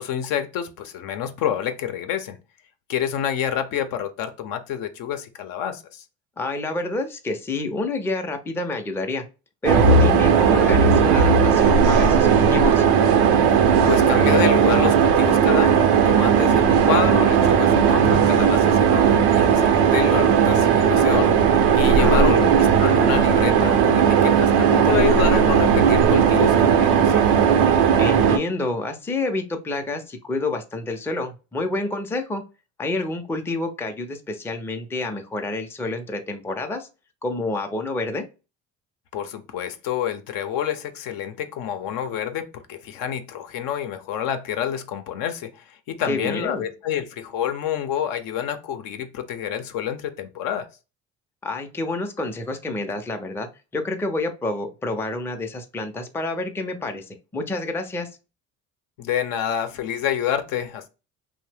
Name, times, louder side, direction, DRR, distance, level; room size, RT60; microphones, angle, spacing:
voice 1, 0.0-2.4 2.9-6.0 13.9-22.5 22.8-27.2 39.1-50.7 59.0-60.9, left 9 dB, 70° left, 0.6 m, -28 dB
voice 2, 6.4-9.2 9.6-12.8 21.9-22.5 28.0-32.4 32.8-36.9 37.2-38.2 46.0-46.7 51.4-58.1, left 2 dB, 5° left, 0.4 m, -28 dB
sound 1, 9.6-28.4, right 7 dB, 85° right, 0.5 m, -17 dB
2.7 x 2.0 x 3.2 m
supercardioid pair, 85°, 35 cm